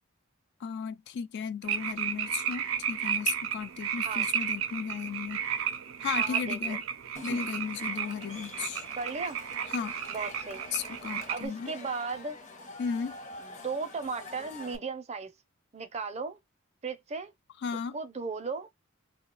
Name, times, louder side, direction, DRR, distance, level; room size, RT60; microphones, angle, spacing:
voice 1, 0.6-5.4 6.0-6.8 7.2-8.8 9.7-10.0 10.7-11.7 12.8-13.2 17.6-18.0, left 6 dB, 55° left, 0.3 m, -35 dB
sound 1, 1.6-11.5, right 8 dB, 85° right, 0.5 m, -33 dB
voice 2, 6.1-6.8 9.0-9.4 10.1-10.6 11.3-12.4 13.4-15.3 15.7-16.4 16.8-17.3 17.9-18.7, right 4 dB, 35° right, 0.5 m, -36 dB
Cheering / Crowd, 7.2-14.8, left 2 dB, 35° left, 0.7 m, -46 dB
2.3 x 2.2 x 3.7 m
head